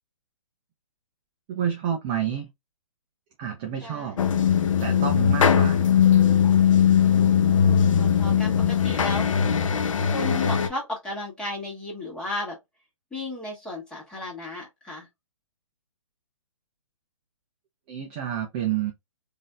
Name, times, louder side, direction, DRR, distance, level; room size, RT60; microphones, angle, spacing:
voice 1, 1.5-2.5 3.4-4.2 4.8-5.8 17.9-18.9, right 9 dB, 20° right, 0.5 m, -29 dB
voice 2, 3.8-4.2 7.1-9.3 10.1-12.6 13.1-15.1, left 1 dB, 5° left, 1.5 m, -35 dB
sound 1, 4.2-10.7, left 8 dB, 70° left, 0.7 m, -20 dB
3.9 x 2.6 x 2.3 m
hypercardioid pair, 155°, 17 cm